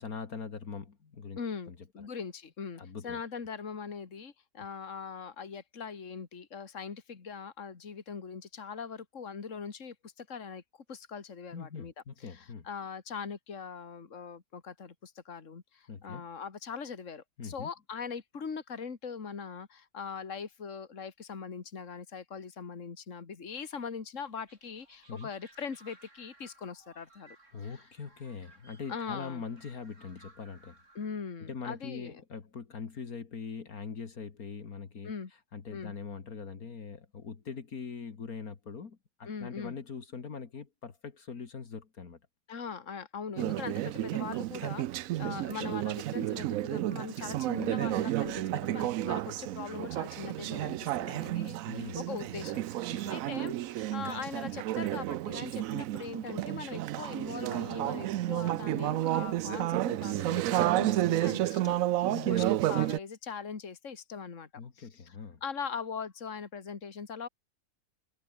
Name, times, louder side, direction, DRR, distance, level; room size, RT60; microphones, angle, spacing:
voice 1, 0.0-1.4 1.7-2.1 2.8-3.2 11.5-12.7 15.9-16.2 17.4-17.7 25.1-25.3 27.5-30.8 31.5-35.1 35.5-42.2 45.2-45.4 51.7-52.0 52.9-53.1 62.1-62.5 64.6-65.4, left 5 dB, 70° left, 2.4 m, -42 dB
voice 2, 1.4-10.6 10.9-11.9 12.2-27.4 27.6-27.8 28.9-29.4 30.9-32.2 35.0-35.3 35.7-35.9 39.3-39.8 42.5-61.8 62.3-64.5 64.8-65.2 65.4-67.3, left 6 dB, 55° left, 2.4 m, -41 dB
sound 1, 24.2-31.1, right 2 dB, 50° right, 5.2 m, -59 dB
Conversation / Chatter, 43.4-63.0, right 14 dB, 70° right, 0.9 m, -31 dB
omnidirectional pair, 1.6 m